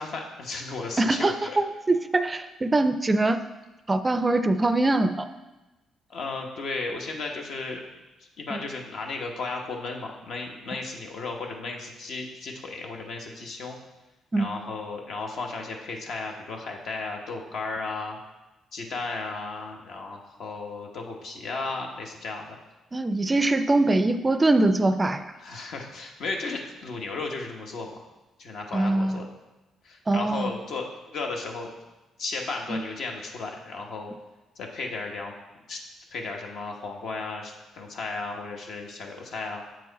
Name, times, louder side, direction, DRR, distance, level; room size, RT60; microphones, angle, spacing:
voice 1, 0.0-1.6 6.1-7.8 8.4-13.8 14.4-18.2 18.7-22.6 25.4-28.0 28.4-29.3 29.8-31.7 32.2-34.1 34.6-35.3 35.7-35.8 36.1-39.6, left 3 dB, 70° left, 1 dB, 1.1 m, -34 dB
voice 2, 1.0-3.4 3.9-5.2 8.5-8.6 14.3-14.5 22.9-25.3 28.7-29.2 30.1-30.5 32.7-32.8, right 2 dB, 25° right, 10 dB, 0.4 m, -23 dB
7.8 x 4.7 x 4.0 m, 1.1 s
cardioid pair, 90°, 0 cm